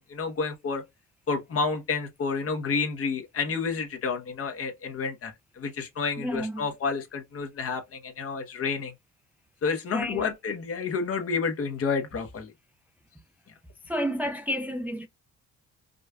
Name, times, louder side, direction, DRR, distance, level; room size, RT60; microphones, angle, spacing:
voice 1, 0.1-0.8 1.3-8.9 9.6-12.5, left 5 dB, 50° left, 1.1 m, -30 dB
voice 2, 6.2-6.7 9.9-10.2 13.9-15.1, equal, 5° right, 0.4 m, -30 dB
5.0 x 2.4 x 2.3 m
cardioid pair, 90°, 30 cm